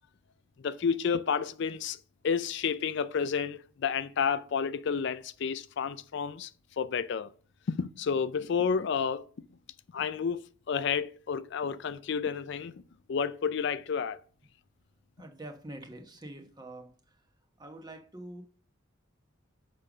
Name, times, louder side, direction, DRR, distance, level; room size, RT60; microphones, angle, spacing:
voice 1, 0.6-6.5 6.8-7.3 7.7-9.3 9.9-10.4 10.7-12.7 13.1-14.2, left 6 dB, 60° left, 0.4 m, -30 dB
voice 2, 15.2-16.9 17.6-18.4, right 1 dB, 20° right, 1.0 m, -45 dB
6.6 x 5.1 x 6.0 m
head